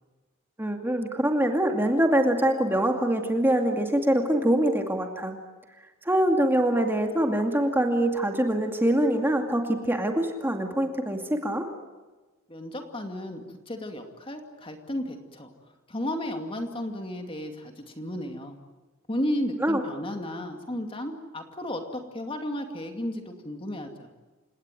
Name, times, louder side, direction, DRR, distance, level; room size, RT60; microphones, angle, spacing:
voice 1, 0.6-5.4 6.1-11.7 19.6-19.8, right 1 dB, 10° right, 3 dB, 2.3 m, -24 dB
voice 2, 12.5-15.5 15.9-18.6 19.1-24.1, left 1 dB, 25° left, 5 dB, 2.4 m, -33 dB
29.0 x 18.5 x 9.1 m, 1.3 s
head